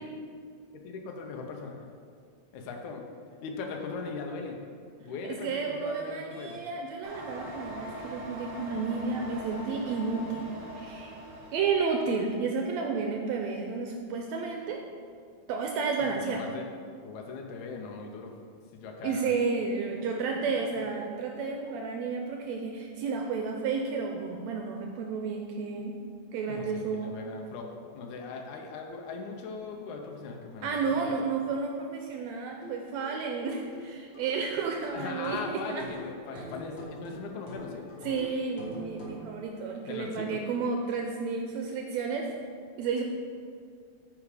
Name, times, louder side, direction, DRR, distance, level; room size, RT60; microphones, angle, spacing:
voice 1, 0.7-1.9 2.5-3.1 3.4-4.6 5.0-6.6 16.3-16.7 17.0-18.3 18.7-19.3 26.5-27.7 27.9-31.1 34.9-37.8 39.9-40.4, left 4 dB, 80° left, 2 dB, 2.2 m, -39 dB
voice 2, 5.2-10.5 10.8-11.1 11.5-14.8 15.5-16.5 19.0-26.0 26.3-27.2 30.6-35.9 36.3-36.5 38.0-42.3 42.8-43.0, right 5 dB, 80° right, 2 dB, 1.7 m, -31 dB
sound 1, 7.0-12.3, equal, 55° right, 0.8 m, -42 dB
sound 2, 32.6-39.3, left 1 dB, 45° left, 2.1 m, -45 dB
9.3 x 4.9 x 4.9 m, 2.1 s
omnidirectional pair, 3.4 m